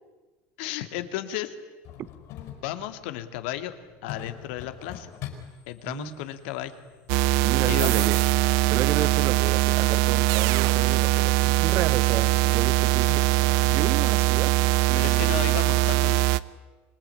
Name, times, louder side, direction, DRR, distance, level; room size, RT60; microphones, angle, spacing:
voice 1, 0.6-1.5 2.6-3.8 4.0-5.1 5.7-6.8 7.7-8.1 9.0-9.3 15.0-16.3, left 13 dB, 80° left, 10 dB, 2.2 m, -34 dB
sound 1, 1.8-14.1, left 10 dB, 50° left, 5.1 m, -46 dB
voice 2, 5.9-6.2 7.4-8.2 8.7-14.5 14.9-15.6, right 12 dB, 40° right, 18 dB, 0.9 m, -32 dB
sound 2, 7.1-16.4, right 19 dB, 65° right, 0.8 m, -22 dB
26.0 x 20.5 x 9.8 m, 1.2 s
cardioid pair, 160°, 6 cm